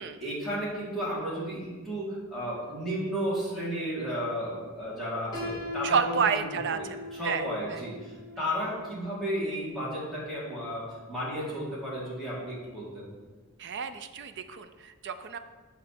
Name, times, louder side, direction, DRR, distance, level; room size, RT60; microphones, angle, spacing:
voice 1, 0.2-6.0 6.3-6.5 6.7-8.1 8.4-13.1, equal, ahead, -9 dB, 2.3 m, -33 dB
Piano, 5.3-11.2, left 1 dB, 20° left, 2.7 m, -41 dB
voice 2, 5.8-7.4 7.7-7.8 13.6-15.4, right 6 dB, 55° right, 9 dB, 0.5 m, -30 dB
8.6 x 3.3 x 6.6 m, 1.3 s
head